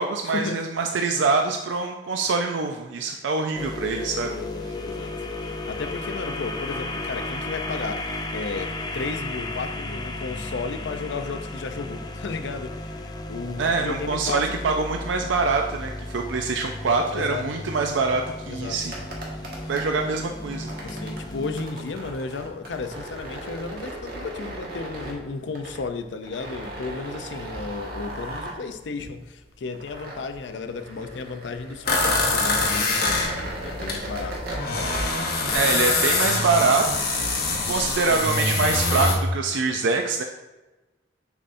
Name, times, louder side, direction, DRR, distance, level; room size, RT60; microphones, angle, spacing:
voice 1, 0.0-4.4 13.6-19.0 19.7-20.7 35.5-36.9 37.7-40.2, right 4 dB, 90° right, 3 dB, 0.5 m, -24 dB
sound 1, 3.5-21.7, left 2 dB, 20° left, 0.5 m, -34 dB
voice 2, 4.3-5.1 5.7-14.7 17.1-17.6 18.5-18.8 19.6-19.7 20.8-34.4, left 4 dB, 75° left, 8 dB, 0.5 m, -34 dB
sound 2, 18.8-36.9, right 1 dB, 55° right, 1.5 m, -37 dB
sound 3, 31.9-34.0 34.2-39.2, left 3 dB, 55° left, 1.1 m, -24 dB
7.0 x 5.5 x 2.6 m, 1.1 s
head